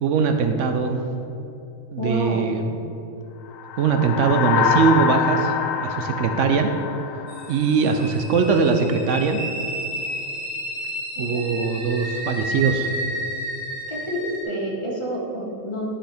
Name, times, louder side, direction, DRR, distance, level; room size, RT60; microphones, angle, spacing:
voice 1, 0.0-1.0 1.9-2.8 3.8-5.5 5.8-6.7 7.5-9.4 11.2-12.9, right 5 dB, 75° right, 6 dB, 0.9 m, -21 dB
voice 2, 2.0-2.5 11.1-11.4 13.9-15.9, equal, 25° left, -3 dB, 1.1 m, -28 dB
sound 1, 3.5-8.1, left 7 dB, 85° left, 1.0 m, -25 dB
sound 2, 7.3-14.4, right 1 dB, 45° right, 1.6 m, -31 dB
10.5 x 5.7 x 3.4 m, 2.9 s
omnidirectional pair, 1.3 m